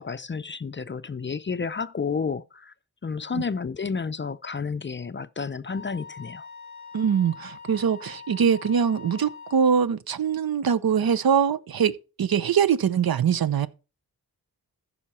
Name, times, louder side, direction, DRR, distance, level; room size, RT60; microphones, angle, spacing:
voice 1, 0.0-2.7 3.0-6.5, left 5 dB, 30° left, 0.4 m, -31 dB
Wind instrument woodwind instrument, 5.7-9.9, left 5 dB, 15° right, 2.5 m, -43 dB
voice 2, 6.9-11.9 12.2-13.7, right 7 dB, 70° right, 0.7 m, -23 dB
14.5 x 5.6 x 4.2 m
wide cardioid pair, 80°, 38 cm